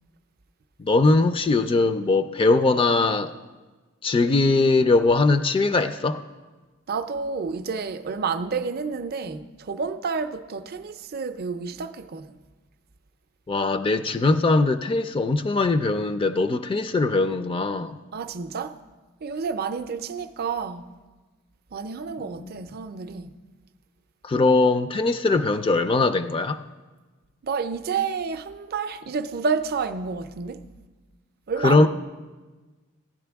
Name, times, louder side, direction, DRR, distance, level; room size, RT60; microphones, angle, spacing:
voice 1, 0.8-3.3 4.0-6.2 13.5-18.0 22.4-22.6 24.2-26.6 31.6-31.9, left 3 dB, 25° left, 0.3 m, -21 dB
voice 2, 6.9-12.4 18.1-18.8 19.2-20.9 21.7-23.3 27.4-30.6 31.5-31.9, right 5 dB, 50° right, 0.5 m, -30 dB
15.0 x 10.5 x 3.4 m
head